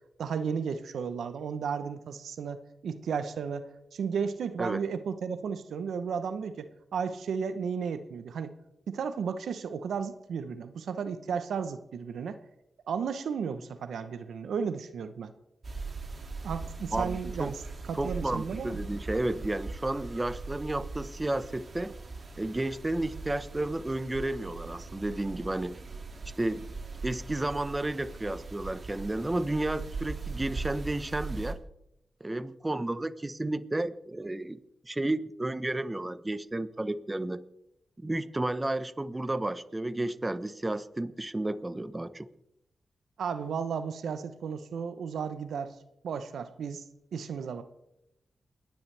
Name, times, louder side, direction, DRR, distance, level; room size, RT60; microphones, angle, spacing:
voice 1, 0.2-8.5 8.9-12.4 12.9-15.3 16.4-17.6 17.8-18.8 43.2-45.7 46.0-46.8 47.1-47.6, right 6 dB, 85° right, 10 dB, 0.9 m, -34 dB
sound 1, 15.6-31.5, right 3 dB, 55° right, 2.4 m, -40 dB
voice 2, 16.9-17.5 17.9-21.9 22.4-25.8 26.4-26.7 27.0-31.6 32.2-34.6 34.8-37.4 38.0-42.3, right 2 dB, 25° right, 13 dB, 1.1 m, -32 dB
29.0 x 10.5 x 3.4 m, 0.83 s
supercardioid pair, 45°, 0 cm